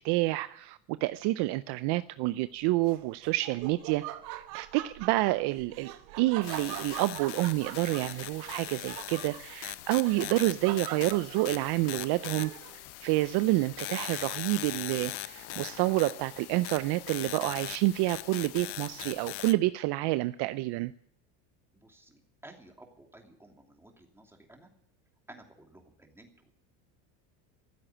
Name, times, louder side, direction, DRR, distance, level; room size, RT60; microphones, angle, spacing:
voice 1, 0.0-5.9 6.2-12.5 13.0-20.9, right 19 dB, 55° right, 14 dB, 0.6 m, -28 dB
Laughter, 2.8-12.9, right 14 dB, 85° right, 1.2 m, -43 dB
sound 1, 6.4-19.5, left 17 dB, 55° left, 0.8 m, -40 dB
sound 2, 13.8-20.1, left 6 dB, 25° left, 2.3 m, -58 dB
voice 2, 21.7-24.7 25.3-26.6, right 1 dB, 5° right, 2 dB, 2.7 m, -54 dB
15.0 x 7.8 x 9.9 m, 0.68 s
supercardioid pair, 110°, 48 cm